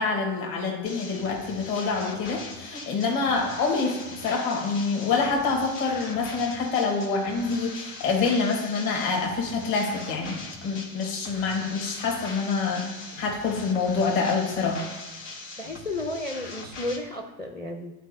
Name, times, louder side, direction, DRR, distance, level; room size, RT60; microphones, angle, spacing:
voice 1, 0.0-12.9 13.2-14.9, left 4 dB, 50° left, -1 dB, 1.7 m, -26 dB
sound 1, 0.9-17.0, left 3 dB, 85° left, 1.3 m, -41 dB
voice 2, 15.6-17.9, left 2 dB, 10° left, 4 dB, 0.5 m, -33 dB
11.0 x 4.4 x 2.7 m, 1.1 s
hypercardioid pair, 80°, 46 cm